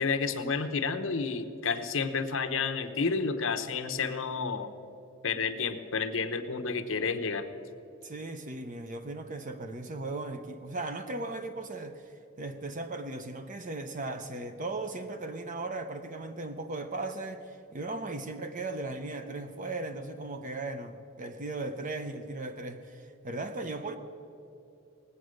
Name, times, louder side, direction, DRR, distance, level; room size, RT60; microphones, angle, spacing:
voice 1, 0.0-4.7 5.2-7.5, left 5 dB, 65° left, 0.8 m, -30 dB
voice 2, 8.0-24.0, right 2 dB, 35° right, 0.6 m, -37 dB
19.0 x 8.4 x 6.4 m
head